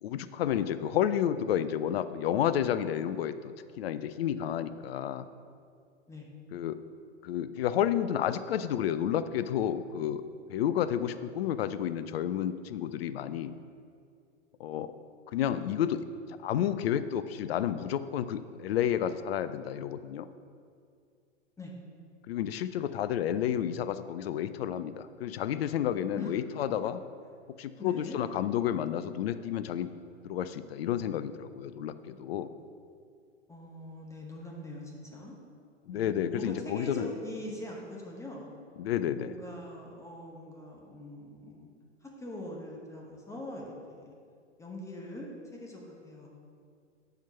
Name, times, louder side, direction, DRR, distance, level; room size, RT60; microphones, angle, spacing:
voice 1, 0.0-5.2 6.5-6.8 7.2-10.2 10.5-13.5 14.6-14.9 15.3-16.1 16.4-20.3 22.3-27.0 27.6-29.9 30.2-32.5 35.9-37.1 38.8-39.3, left 10 dB, 55° left, 13 dB, 0.5 m, -31 dB
voice 2, 27.8-28.2 33.5-35.3 35.9-38.5 39.2-41.7 42.0-44.1 44.6-46.3, left 1 dB, 10° left, -2 dB, 0.9 m, -42 dB
5.7 x 4.4 x 5.7 m, 2.2 s
figure-of-eight pair, 105°, 36 cm